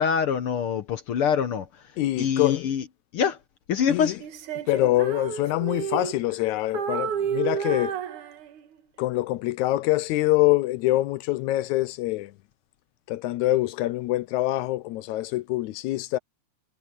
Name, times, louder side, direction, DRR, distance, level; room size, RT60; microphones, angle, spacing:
voice 1, 0.0-1.7 2.2-2.8 3.1-3.4 3.7-4.2, left 7 dB, 65° left, 1.5 m, -24 dB
voice 2, 2.0-2.7 3.9-4.2 4.7-8.0 9.0-12.3 13.1-16.2, left 17 dB, 80° left, 2.0 m, -25 dB
Female singing, 4.2-6.4 6.7-8.8, right 8 dB, 90° right, 3.1 m, -31 dB
omnidirectional pair, 3.4 m